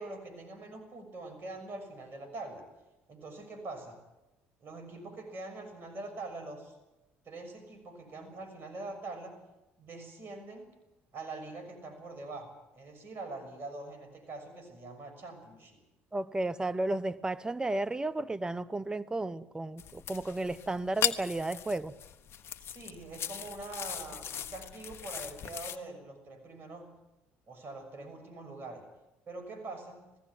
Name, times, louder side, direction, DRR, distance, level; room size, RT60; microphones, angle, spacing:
voice 1, 0.0-2.6 3.1-4.0 4.6-6.8 7.2-9.4 9.8-10.7 11.1-15.8 22.6-26.9 27.5-28.8 29.3-30.0, right 2 dB, 45° right, 6 dB, 6.4 m, -44 dB
voice 2, 16.1-21.9, right 2 dB, 15° right, 17 dB, 0.9 m, -33 dB
sound 1, 19.8-25.8, left 9 dB, 55° left, 1.3 m, -38 dB
20.0 x 16.5 x 9.3 m, 0.98 s
hypercardioid pair, 70°, 5 cm